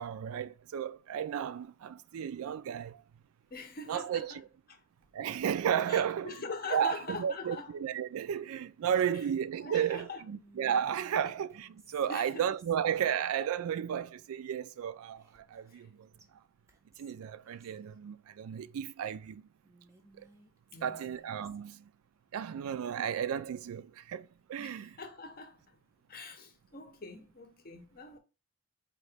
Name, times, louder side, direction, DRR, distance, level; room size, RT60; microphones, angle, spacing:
voice 1, 0.0-3.0 3.9-4.4 5.1-6.3 6.7-16.1 17.0-19.4 20.1-20.3 20.8-21.9 22.3-25.0, right 8 dB, 75° right, 0.3 m, -33 dB
voice 2, 3.5-4.4 4.7-4.8 5.9-7.7 9.6-10.2 12.1-12.4 15.7-15.8 16.1-16.2 20.7-21.1 24.6-25.8 26.1-28.2, left 3 dB, 40° left, 0.7 m, -43 dB
Whispering, 10.3-13.1 15.2-15.9 16.2-16.3 16.7-17.8 19.6-21.8, right 2 dB, 15° right, 0.5 m, -60 dB
4.1 x 2.8 x 3.3 m
head